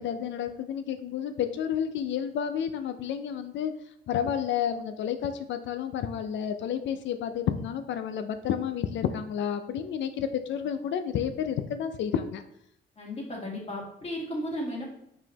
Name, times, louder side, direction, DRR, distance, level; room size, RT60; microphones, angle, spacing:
voice 1, 0.0-3.7 4.1-12.4, left 8 dB, 70° left, 9 dB, 0.4 m, -30 dB
voice 2, 13.0-14.9, equal, 30° left, -2 dB, 1.8 m, -34 dB
4.8 x 3.7 x 2.9 m, 0.74 s
cardioid pair, 90°, 20 cm